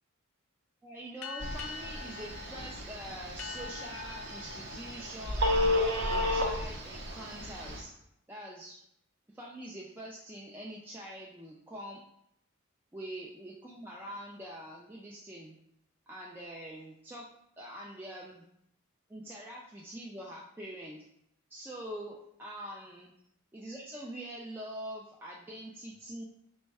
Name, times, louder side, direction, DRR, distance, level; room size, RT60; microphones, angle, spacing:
voice 1, 0.8-7.9 8.3-8.8 9.3-12.0 12.9-15.6 16.1-17.3 17.6-18.4 19.1-21.0 21.5-23.1 23.5-26.2, right 1 dB, 10° right, -3 dB, 0.3 m, -44 dB
sound 1, 1.2-6.3, left 5 dB, 70° left, 0.5 m, -45 dB
Telephone, 1.4-7.8, left 1 dB, 55° right, 0.6 m, -33 dB
4.2 x 2.1 x 4.6 m, 0.75 s
head